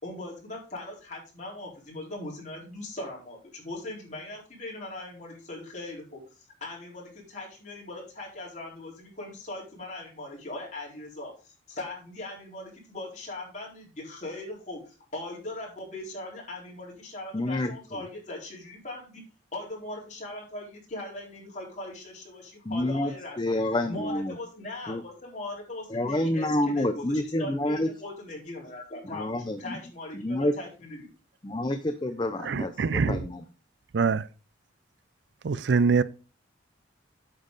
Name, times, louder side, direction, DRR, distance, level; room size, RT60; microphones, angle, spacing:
voice 1, 0.0-6.2 6.6-19.2 19.5-23.5 23.9-31.1, left 2 dB, 40° left, 4.2 m, -40 dB
voice 2, 17.3-18.1 22.6-24.4 24.9-25.0 25.9-27.9 29.1-29.8 30.1-30.5 31.4-33.4, left 1 dB, 25° left, 0.6 m, -28 dB
voice 3, 32.4-33.2 33.9-34.2 35.4-36.0, right 5 dB, 65° right, 0.4 m, -24 dB
8.9 x 7.2 x 4.0 m
head